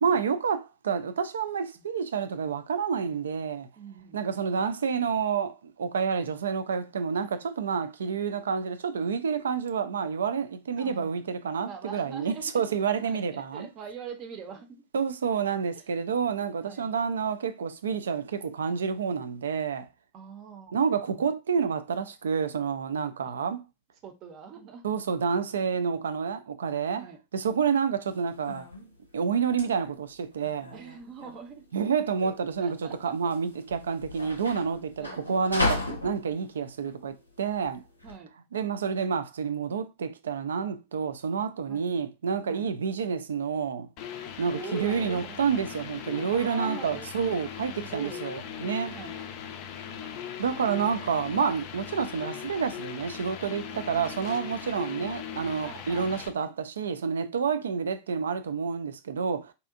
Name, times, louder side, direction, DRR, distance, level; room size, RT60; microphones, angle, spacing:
voice 1, 0.0-3.7 4.1-13.7 14.9-19.9 20.7-23.6 24.8-27.0 27.3-28.7 29.1-30.8 31.7-37.8 38.5-43.9 44.4-48.9 50.4-59.5, right 6 dB, 65° right, 0.3 m, -29 dB
voice 2, 3.8-4.2 10.8-11.2 11.6-12.6 13.0-14.8 15.7-15.8 16.6-16.9 20.1-20.8 21.1-21.2 24.0-24.8 26.9-27.2 30.7-31.7 32.6-33.1 35.0-35.2 38.0-38.3 41.7-41.8 42.5-42.7 44.4-45.4 46.1-47.1 47.8-48.2 48.9-49.2 53.7-53.8 55.6-56.5, right 7 dB, 35° right, 0.6 m, -43 dB
sound 1, 28.1-38.2, left 2 dB, 85° left, 0.6 m, -36 dB
sound 2, 44.0-56.3, left 8 dB, 45° left, 0.4 m, -39 dB
2.7 x 2.4 x 2.4 m
figure-of-eight pair, 90°, 0 cm